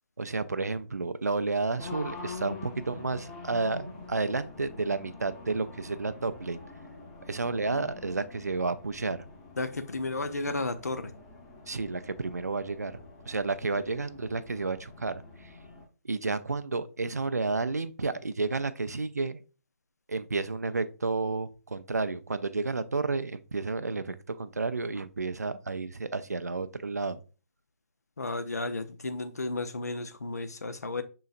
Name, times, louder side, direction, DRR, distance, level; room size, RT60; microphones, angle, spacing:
voice 1, 0.2-6.6 7.3-9.2 11.7-12.9 13.3-15.6 16.0-19.4 20.1-27.2, right 3 dB, 85° right, 0.4 m, -31 dB
Race car auto racing, 1.8-15.9, left 3 dB, 25° left, 1.0 m, -46 dB
voice 2, 9.6-11.1 28.2-31.0, left 2 dB, 80° left, 0.6 m, -33 dB
5.6 x 3.8 x 2.5 m
figure-of-eight pair, 140°, 9 cm